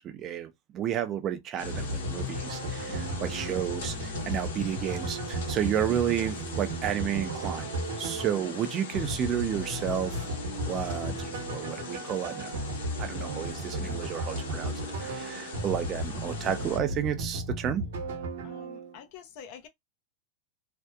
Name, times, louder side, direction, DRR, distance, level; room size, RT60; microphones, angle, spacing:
voice 1, 0.0-2.9 3.2-7.7 8.0-10.2 10.7-12.5 13.0-17.8, right 9 dB, 35° right, 0.4 m, -31 dB
sound 1, 1.6-16.8, left 5 dB, 85° left, 1.1 m, -41 dB
sound 2, 1.6-19.0, right 1 dB, 80° right, 0.8 m, -35 dB
voice 2, 18.4-19.7, left 7 dB, 55° left, 0.6 m, -47 dB
2.6 x 2.1 x 2.3 m
supercardioid pair, 130°, 0 cm